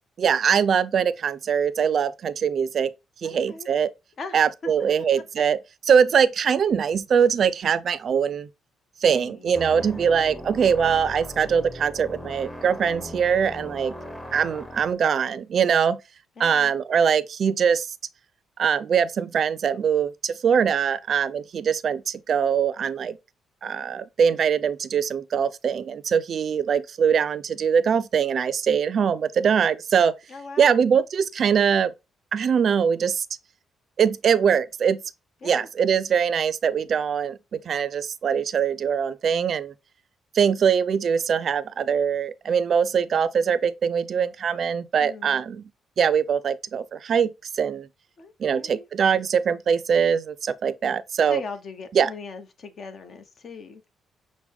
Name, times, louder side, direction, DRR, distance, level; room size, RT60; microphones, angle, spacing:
voice 1, 0.2-2.9 3.2-3.9 4.3-5.6 5.9-8.5 9.0-13.9 14.3-16.0 16.4-17.9 18.6-23.2 23.6-30.1 30.6-31.9 32.3-33.2 34.0-35.0 35.4-39.7 40.3-45.6 46.0-47.9 48.4-51.4 51.9-52.1, right 7 dB, 55° right, 0.4 m, -22 dB
voice 2, 3.2-3.7 4.2-4.7 5.0-5.1 9.1-10.1 16.4-16.7 30.3-30.9 35.4-35.7 45.0-45.4 48.2-48.9 51.3-53.8, left 4 dB, 50° left, 0.8 m, -40 dB
sound 1, 9.5-14.9, left 1 dB, 10° left, 0.8 m, -39 dB
6.0 x 2.1 x 3.4 m
cardioid pair, 90°, 0 cm